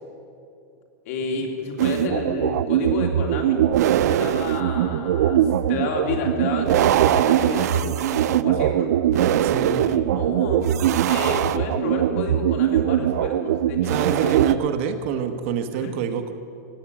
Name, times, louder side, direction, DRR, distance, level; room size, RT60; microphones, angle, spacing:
voice 1, 1.0-3.6 4.1-5.4 5.7-8.9 9.5-10.6 11.1-14.5 15.7-16.0, left 4 dB, 55° left, 1 dB, 2.9 m, -31 dB
sound 1, 1.8-14.6, right 11 dB, 70° right, 0.5 m, -21 dB
voice 2, 9.4-9.8 13.9-16.3, right 8 dB, 45° right, 8 dB, 1.0 m, -26 dB
16.0 x 9.5 x 8.8 m, 2.8 s
supercardioid pair, 170°, 9 cm